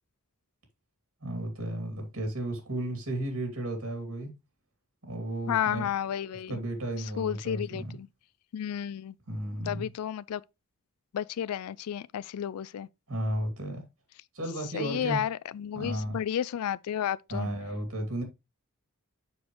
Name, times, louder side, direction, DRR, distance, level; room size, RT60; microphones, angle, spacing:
voice 1, 1.2-4.3 5.0-5.9 6.5-8.0 9.3-9.9 13.1-13.8 14.3-15.2 15.7-16.2 17.3-18.2, right 1 dB, 70° right, 2.5 m, -33 dB
voice 2, 5.5-6.6 7.2-8.1 8.5-9.1 9.7-10.4 11.1-12.9 14.7-17.5, left 9 dB, 85° left, 0.3 m, -32 dB
7.1 x 6.1 x 3.1 m
head